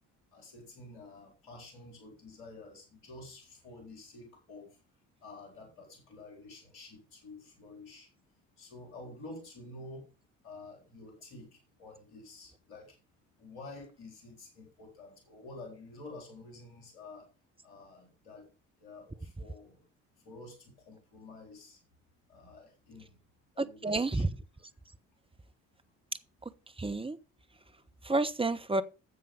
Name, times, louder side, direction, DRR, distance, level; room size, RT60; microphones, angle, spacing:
voice 1, 0.3-4.8 5.2-8.1 8.6-10.1 10.4-11.5 11.8-13.0 13.4-17.3 17.6-18.5 18.8-19.8 20.2-21.8 22.3-23.1 23.5-24.3, left 2 dB, 75° left, 4.1 m, -49 dB
voice 2, 23.6-24.3 26.4-26.5 26.8-27.2 28.0-28.8, right 2 dB, 15° right, 1.2 m, -30 dB
11.0 x 7.4 x 5.4 m
hypercardioid pair, 45°, 38 cm